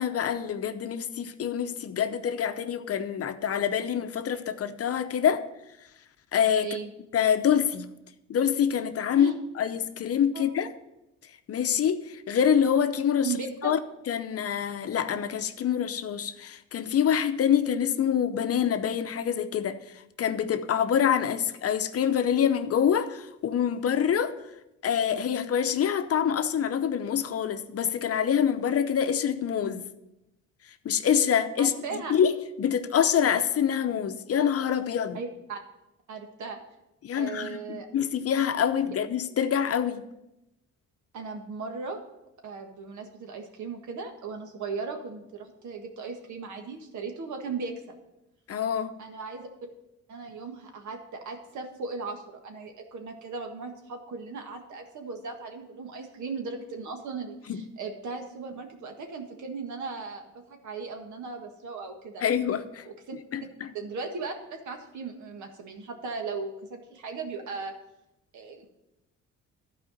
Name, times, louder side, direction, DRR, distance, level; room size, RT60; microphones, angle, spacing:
voice 1, 0.0-5.5 6.3-6.7 7.1-7.9 8.3-10.7 11.5-13.3 13.6-13.8 14.1-24.4 24.8-29.9 30.8-32.3 32.6-35.2 37.0-40.0 48.5-49.0 57.5-57.6 62.2-62.9 63.3-63.7, left 8 dB, 50° left, 0.7 m, -26 dB
voice 2, 6.6-6.9 9.2-9.3 10.3-10.4 13.2-13.7 31.6-32.1 35.1-35.6 36.1-36.6 37.1-37.9 41.1-42.0 42.4-48.0 49.0-49.5 50.1-62.2 62.8-63.2 63.7-67.7 68.3-68.7, right 4 dB, 75° right, 1.7 m, -37 dB
12.0 x 4.9 x 6.5 m
cardioid pair, 90°, 30 cm